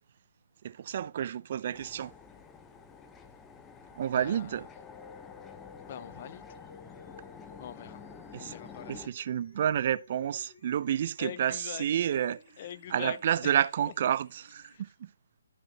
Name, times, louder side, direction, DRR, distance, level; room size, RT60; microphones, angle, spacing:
voice 1, 0.6-2.1 4.0-4.6 8.3-8.5 8.9-12.4 12.9-15.1, right 9 dB, 40° right, 0.5 m, -30 dB
sound 1, 1.7-9.1, left 6 dB, 10° left, 0.9 m, -49 dB
voice 2, 4.1-4.7 5.8-6.6 7.6-8.0 8.4-9.1 11.2-11.9 12.6-13.6 14.7-14.8, left 10 dB, 40° left, 0.6 m, -43 dB
sound 2, 4.8-14.8, left 4 dB, 60° left, 6.9 m, -56 dB
12.5 x 6.7 x 2.9 m
figure-of-eight pair, 145°, 0 cm